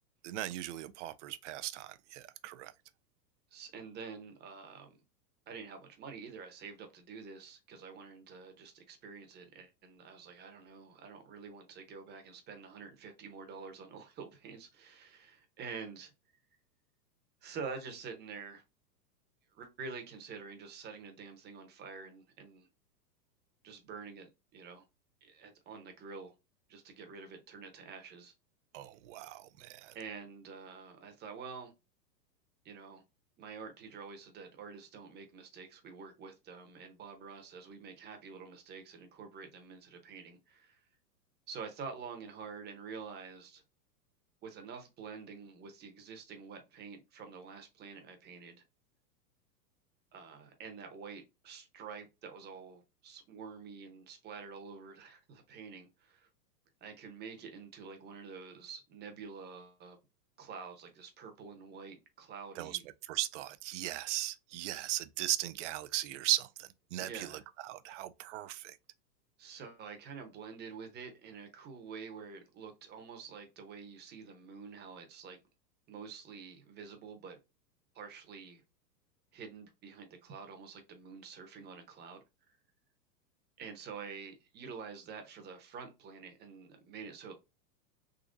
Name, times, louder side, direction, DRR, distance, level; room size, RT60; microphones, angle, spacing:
voice 1, 0.2-2.7 28.7-30.0 62.6-68.8, right 15 dB, 50° right, 0.5 m, -37 dB
voice 2, 3.5-5.0 5.5-16.1 17.4-18.6 19.5-22.7 23.6-24.8 25.2-26.3 26.7-28.3 29.9-31.7 32.6-33.0 33.4-40.8 41.5-43.6 44.4-48.6 50.1-56.3 56.8-60.0 60.4-62.8 67.0-67.4 69.4-75.4 75.9-77.4 77.9-78.6 79.3-82.6 83.6-87.3, right 5 dB, 20° right, 0.8 m, -47 dB
3.8 x 2.8 x 2.5 m
hypercardioid pair, 125°, 50 cm